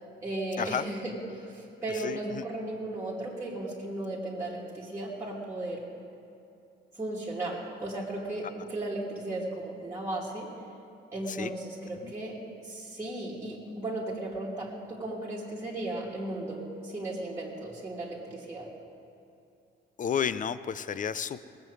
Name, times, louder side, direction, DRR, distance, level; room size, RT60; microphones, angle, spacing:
voice 1, 0.2-5.8 6.9-10.5 11.1-18.7, right 2 dB, 15° right, -7 dB, 2.7 m, -36 dB
voice 2, 2.0-2.5 11.3-11.5 12.0-12.1 20.0-21.4, left 8 dB, 40° left, 14 dB, 0.6 m, -31 dB
18.5 x 7.8 x 7.9 m, 2.6 s
cardioid pair, 90°, 20 cm